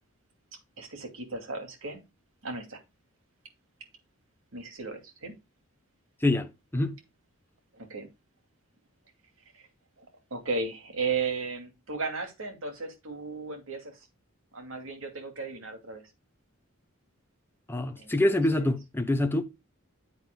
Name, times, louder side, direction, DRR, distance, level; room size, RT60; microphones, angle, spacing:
voice 1, 0.8-2.0 2.4-2.8 4.5-5.3 7.7-8.1 9.6-9.7 10.0-10.1 10.3-14.0 14.5-16.0 18.0-18.1 18.5-18.7, right 4 dB, 65° right, 2.5 m, -35 dB
voice 2, 6.2-6.9 17.7-19.4, left 1 dB, 10° left, 0.8 m, -26 dB
9.7 x 8.0 x 2.2 m
head